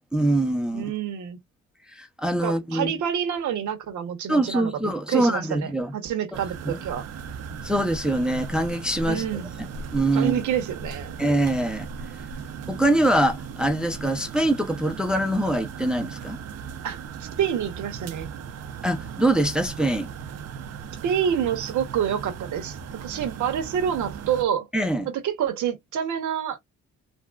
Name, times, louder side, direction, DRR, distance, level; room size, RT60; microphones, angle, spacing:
voice 1, 0.1-0.9 1.9-2.9 4.3-5.9 6.7-6.8 7.6-9.2 9.6-9.7 9.9-10.3 11.2-11.9 12.7-16.4 18.8-20.1 24.7-25.1, right 1 dB, 5° right, 0.6 m, -24 dB
voice 2, 0.7-1.4 2.4-4.7 5.1-7.0 9.1-9.5 10.1-11.2 16.8-18.3 21.0-24.7 25.1-26.6, right 8 dB, 75° right, 1.0 m, -27 dB
sound 1, 6.3-24.4, right 6 dB, 55° right, 0.6 m, -37 dB
3.5 x 2.3 x 2.3 m
cardioid pair, 90°, 30 cm